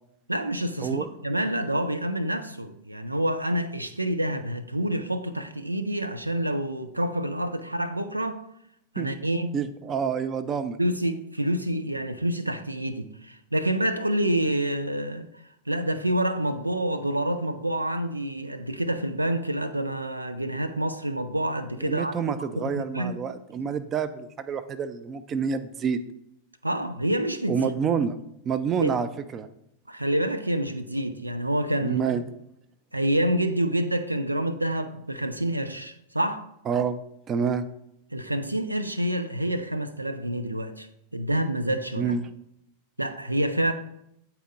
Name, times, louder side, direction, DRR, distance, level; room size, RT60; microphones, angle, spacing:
voice 1, 0.3-8.4 8.9-9.6 10.8-15.3 15.7-23.2 26.6-27.7 28.8-28.9 29.9-32.0 32.9-36.5 38.1-40.9 41.1-42.1 43.0-43.7, right 1 dB, 85° right, 0.4 m, -27 dB
voice 2, 9.5-10.8 21.8-26.0 27.5-28.2 28.5-29.5 31.8-32.2 36.7-37.0 37.3-37.7 42.0-42.2, right 6 dB, 25° right, 0.5 m, -28 dB
8.3 x 4.3 x 3.9 m
figure-of-eight pair, 90°, 0 cm